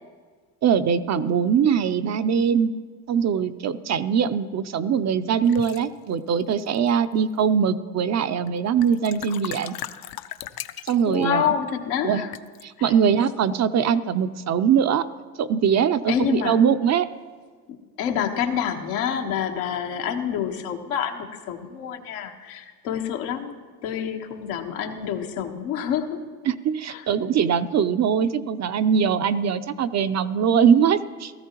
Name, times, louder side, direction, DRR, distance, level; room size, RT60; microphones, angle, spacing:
voice 1, 0.6-2.7 3.1-9.8 10.8-11.4 12.0-12.2 12.6-15.1 15.4-17.1 26.5-31.3, right 7 dB, 35° right, 11 dB, 0.6 m, -22 dB
sound 1, 5.5-5.9 6.6-7.1 8.5-8.6 8.8-11.2 12.3-12.6, left 12 dB, 50° left, 0.7 m, -37 dB
voice 2, 11.1-12.3 12.8-12.9 16.1-16.6 18.0-26.2 26.9-27.1, left 8 dB, 80° left, 4 dB, 1.4 m, -27 dB
16.5 x 14.0 x 3.0 m, 1.5 s
supercardioid pair, 80°, 46 cm